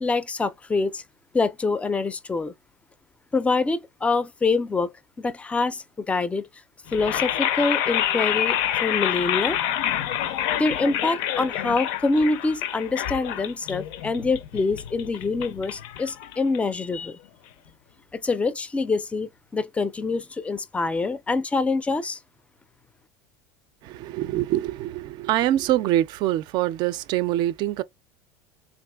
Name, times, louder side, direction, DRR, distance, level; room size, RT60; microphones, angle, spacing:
voice 1, 0.0-1.0 1.3-2.5 3.3-4.9 5.2-6.5 6.9-9.6 10.6-17.2 18.1-22.2, left 3 dB, 15° left, 0.4 m, -25 dB
sound 1, 6.9-16.9, left 11 dB, 65° left, 0.5 m, -27 dB
voice 2, 23.8-27.8, right 14 dB, 55° right, 0.4 m, -24 dB
3.5 x 2.5 x 2.2 m
supercardioid pair, 95°, 9 cm